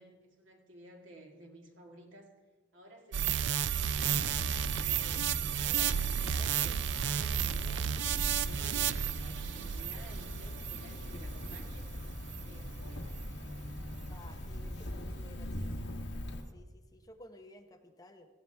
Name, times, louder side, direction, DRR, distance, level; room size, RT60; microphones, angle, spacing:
voice 1, 0.0-2.3 2.7-4.1 4.7-11.9 12.4-13.1, right 1 dB, 85° right, 2 dB, 2.1 m, -54 dB
sound 1, 3.1-11.8 12.3-12.4, right 9 dB, 65° right, 0.4 m, -32 dB
Cricket, 4.0-16.4, left 1 dB, 65° left, 1.4 m, -41 dB
voice 2, 14.1-15.8 16.5-18.3, left 1 dB, 20° left, 5 dB, 0.9 m, -55 dB
16.5 x 15.5 x 3.5 m, 1.3 s
head